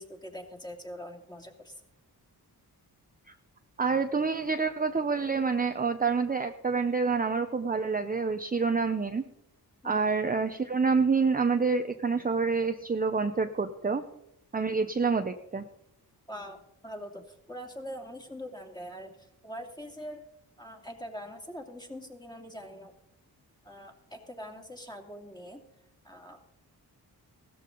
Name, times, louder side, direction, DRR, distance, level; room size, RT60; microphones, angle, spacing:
voice 1, 0.0-1.8 9.8-10.0 16.3-20.2 20.6-22.9 23.6-25.6 26.0-26.4, equal, 10° left, 2 dB, 2.4 m, -43 dB
voice 2, 3.8-9.2 9.8-14.0 14.5-15.6, right 4 dB, 20° right, 7 dB, 0.7 m, -27 dB
16.5 x 13.5 x 3.9 m, 0.81 s
cardioid pair, 85°, 39 cm